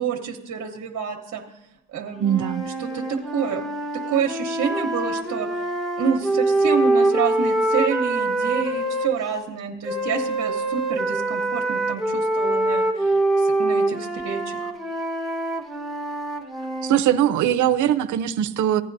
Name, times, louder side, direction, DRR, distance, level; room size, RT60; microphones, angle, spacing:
voice 1, 0.0-1.4 1.9-2.3 2.8-3.7 3.9-5.5 6.0-14.7, right 6 dB, 55° right, 2 dB, 1.0 m, -28 dB
sound 1, 2.2-9.1 9.8-17.0, right 2 dB, ahead, 1.2 m, -24 dB
voice 2, 2.2-2.6 16.8-18.8, right 11 dB, 80° right, 9 dB, 0.6 m, -21 dB
16.0 x 9.7 x 2.6 m, 0.88 s
cardioid pair, 90°, 30 cm